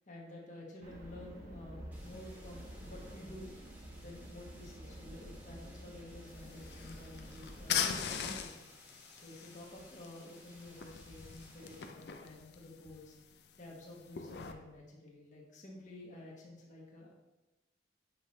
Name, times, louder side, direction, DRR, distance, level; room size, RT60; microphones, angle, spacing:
voice 1, 0.1-3.5 4.0-8.6 9.2-13.2 13.6-17.1, left 1 dB, 45° left, -3 dB, 1.4 m, -51 dB
sound 1, 0.8-8.4, equal, 45° right, 1.1 m, -50 dB
sound 2, 1.9-11.9, equal, 10° right, 1.3 m, -60 dB
sound 3, 6.3-14.5, left 7 dB, 65° left, 0.5 m, -41 dB
7.8 x 5.6 x 3.2 m, 1.0 s
head